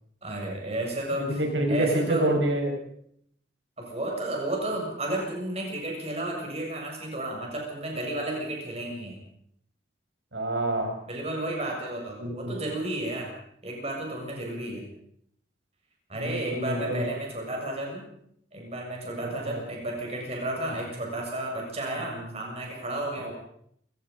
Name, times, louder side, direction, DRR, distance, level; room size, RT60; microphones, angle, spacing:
voice 1, 0.2-1.4 1.7-2.3 3.8-9.2 11.1-13.4 13.6-14.9 16.1-18.1 18.5-23.3, right 1 dB, 35° right, 0 dB, 7.1 m, -32 dB
voice 2, 1.2-2.8 10.3-10.9 12.2-12.5 16.1-17.0 19.2-19.6 22.2-22.3 23.2-23.3, right 1 dB, 90° right, 4 dB, 5.7 m, -27 dB
28.5 x 17.0 x 5.5 m, 0.69 s
head